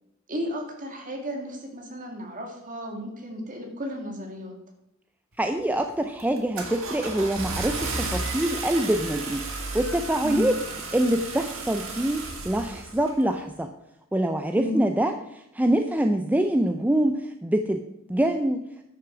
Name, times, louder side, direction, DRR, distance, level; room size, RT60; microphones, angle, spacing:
voice 1, 0.3-4.5 10.2-10.5 14.6-14.8, equal, 40° right, 2 dB, 2.2 m, -33 dB
voice 2, 5.4-10.6 10.9-13.7 14.1-17.8 18.1-18.7, right 1 dB, 10° right, 6 dB, 0.4 m, -25 dB
Car / Engine starting, 5.4-5.7 6.2-13.2, right 3 dB, 65° right, 2.0 m, -33 dB
9.7 x 6.5 x 6.0 m, 0.81 s
head